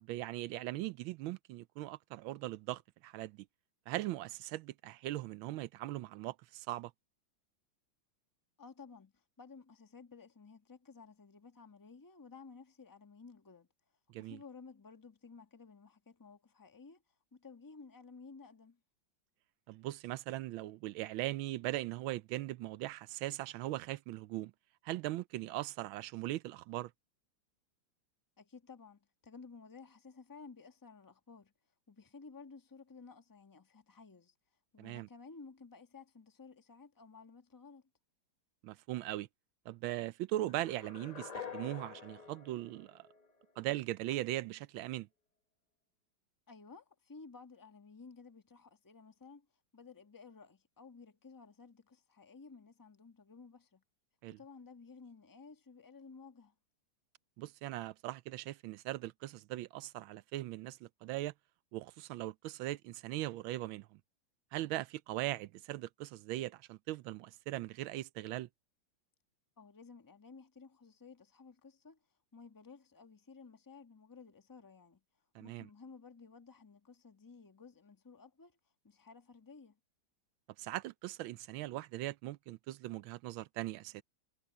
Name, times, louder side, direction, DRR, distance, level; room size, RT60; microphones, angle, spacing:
voice 1, 0.0-3.5 3.9-6.9 14.1-14.4 19.7-24.5 24.8-26.9 34.8-35.1 38.6-39.3 39.7-43.1 43.6-45.1 54.2-54.4 57.4-61.3 61.7-64.0 64.5-68.5 75.3-75.7 80.6-84.0, right 16 dB, 85° right, 1.4 m, -40 dB
voice 2, 8.6-13.7 14.2-17.0 17.3-18.8 28.4-31.5 31.9-34.3 34.7-37.8 46.5-49.5 49.7-53.8 54.3-56.5 69.6-72.0 72.3-75.0 75.4-78.5 78.8-79.8, left 4 dB, 15° left, 1.0 m, -55 dB
sound 1, 40.5-43.6, left 6 dB, 35° left, 0.6 m, -48 dB
omnidirectional pair, 2.2 m